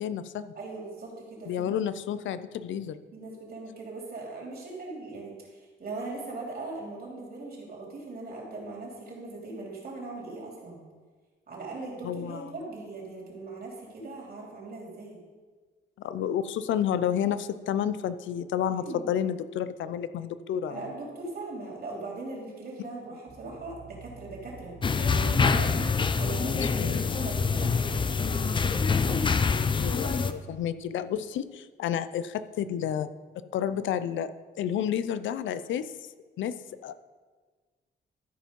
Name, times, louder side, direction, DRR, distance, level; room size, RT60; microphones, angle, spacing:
voice 1, 0.0-0.5 1.5-3.0 12.0-12.4 16.0-20.8 26.5-27.3 29.8-33.1 33.5-34.3 34.6-35.9 36.4-36.5 36.8-37.0, left 9 dB, 90° left, 13 dB, 0.5 m, -30 dB
voice 2, 0.5-1.7 3.1-10.8 11.5-15.2 18.8-19.1 20.7-28.5, right 3 dB, 55° right, -3 dB, 3.3 m, -40 dB
sound 1, 23.3-27.9, right 4 dB, 15° right, 1.5 m, -51 dB
sound 2, 24.8-30.3, left 5 dB, 25° left, 0.5 m, -25 dB
13.0 x 5.1 x 5.3 m, 1.4 s
cardioid pair, 115°, 19 cm